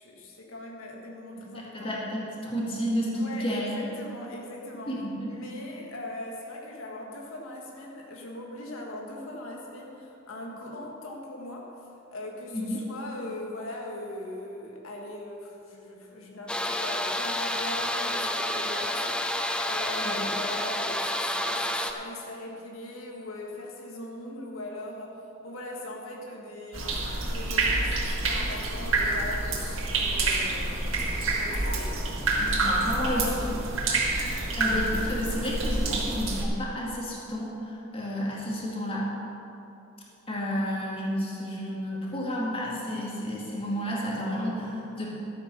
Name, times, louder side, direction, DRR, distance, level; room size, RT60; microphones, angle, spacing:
voice 1, 0.0-1.9 3.1-5.0 5.3-11.8 12.1-30.9 31.3-32.0 32.8-33.5, left 1 dB, 90° left, -1 dB, 1.7 m, -40 dB
voice 2, 1.7-3.8 4.9-5.4 12.5-12.8 20.0-20.3 32.4-33.3 34.3-39.1 40.3-45.1, equal, 30° left, -4 dB, 2.4 m, -31 dB
sound 1, 16.5-21.9, left 1 dB, 5° left, 0.5 m, -29 dB
sound 2, 26.7-36.4, right 2 dB, 70° right, 1.9 m, -27 dB
12.5 x 8.5 x 5.7 m, 2.8 s
head